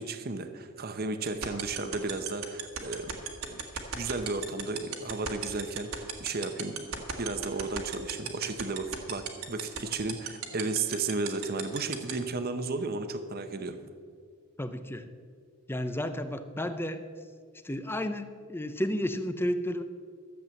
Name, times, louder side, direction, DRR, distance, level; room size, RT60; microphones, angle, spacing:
voice 1, 0.0-3.1 3.5-3.6 3.9-6.7 7.2-13.8, right 3 dB, 45° right, 9 dB, 0.9 m, -34 dB
sound 1, 1.3-12.1, right 8 dB, 65° right, 1.6 m, -33 dB
voice 2, 14.6-15.1 15.7-17.0 17.6-19.8, left 1 dB, 10° left, 10 dB, 0.6 m, -32 dB
13.5 x 7.6 x 7.5 m, 2.1 s
head